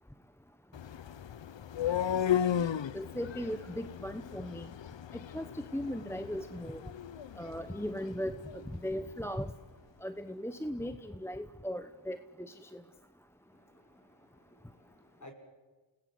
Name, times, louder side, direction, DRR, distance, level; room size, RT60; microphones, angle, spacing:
sound 1, 0.7-8.7, left 9 dB, 60° left, 0.7 m, -35 dB
voice 1, 2.9-4.7 5.3-5.4 5.7-6.8 7.4-8.4 8.8-9.5 10.0-12.8, equal, 5° left, 10 dB, 1.0 m, -37 dB
voice 2, 13.5-15.3, left 1 dB, 35° left, 3 dB, 6.3 m, -57 dB
29.5 x 19.5 x 7.9 m, 1.2 s
wide cardioid pair, 65°, 49 cm